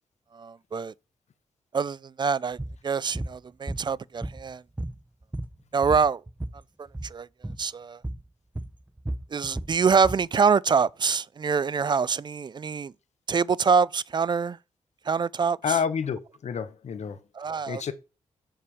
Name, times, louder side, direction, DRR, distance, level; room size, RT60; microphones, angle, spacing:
voice 1, 0.3-0.9 1.7-2.6 2.8-4.6 5.7-6.2 7.0-7.3 7.6-8.0 9.3-12.9 13.3-14.6 15.1-15.6 17.4-17.8, right 5 dB, 35° right, 0.3 m, -25 dB
sound 1, 2.6-2.8 3.1-3.4 3.7-4.5 4.8-6.6 6.9-7.1 7.4-7.6 8.0-8.3 8.6-10.3, right 1 dB, 10° right, 0.7 m, -34 dB
voice 2, 15.6-17.2 17.7-17.9, left 7 dB, 65° left, 0.9 m, -29 dB
6.9 x 5.6 x 4.8 m
cardioid pair, 90°, 12 cm